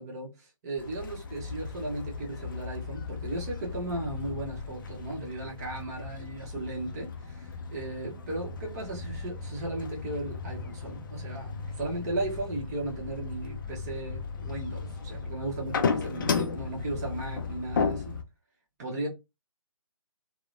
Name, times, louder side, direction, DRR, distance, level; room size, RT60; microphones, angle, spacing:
voice 1, 0.0-18.1 18.8-19.1, right 2 dB, 30° right, 1.0 m, -36 dB
sound 1, 0.8-18.2, left 5 dB, 40° left, 0.4 m, -35 dB
3.0 x 2.1 x 2.5 m
figure-of-eight pair, 145°, 17 cm